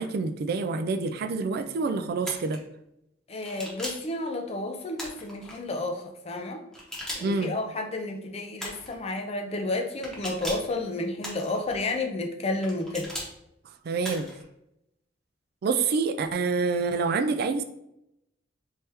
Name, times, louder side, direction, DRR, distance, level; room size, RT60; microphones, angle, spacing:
voice 1, 0.0-2.6 7.2-7.5 13.9-14.3 15.6-17.6, right 4 dB, 55° right, 10 dB, 0.3 m, -27 dB
sound 1, 2.2-2.6 3.4-4.1 4.9-5.6 6.7-7.5 8.6-9.0 10.0-10.7 11.2-11.8 12.6-13.3 14.0-14.4, equal, 5° left, 1.0 m, -38 dB
voice 2, 3.3-6.6 7.1-13.1, left 2 dB, 35° left, 4 dB, 0.5 m, -31 dB
3.3 x 3.3 x 2.9 m, 0.82 s
head